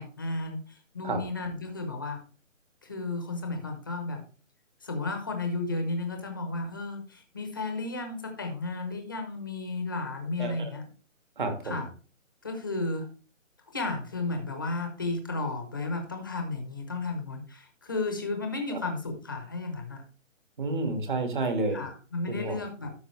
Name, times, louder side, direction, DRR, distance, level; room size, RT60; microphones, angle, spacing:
voice 1, 0.0-2.2 2.8-4.2 4.8-10.8 11.6-11.9 12.4-13.1 13.7-20.0 21.7-22.9, left 3 dB, 15° left, 5 dB, 0.8 m, -33 dB
voice 2, 10.4-10.7 11.4-11.8 18.7-18.8 20.6-21.8 22.3-22.6, right 2 dB, 40° right, 5 dB, 1.9 m, -30 dB
12.5 x 5.5 x 3.2 m, 0.35 s
hypercardioid pair, 170°, 39 cm